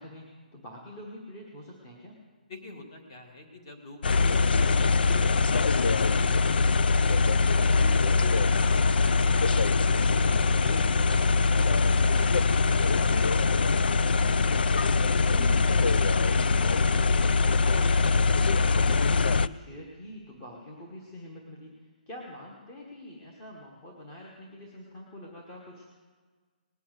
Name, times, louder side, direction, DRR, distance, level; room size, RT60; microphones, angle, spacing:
voice 1, 0.0-2.2 15.3-25.9, left 1 dB, 15° left, -1 dB, 1.1 m, -45 dB
voice 2, 2.5-7.2 7.6-11.3 11.7-14.2, left 2 dB, 30° left, 4 dB, 1.8 m, -46 dB
sound 1, 4.0-19.5, left 4 dB, 85° left, 0.4 m, -23 dB
19.0 x 7.0 x 7.9 m, 1.5 s
hypercardioid pair, 180°, 5 cm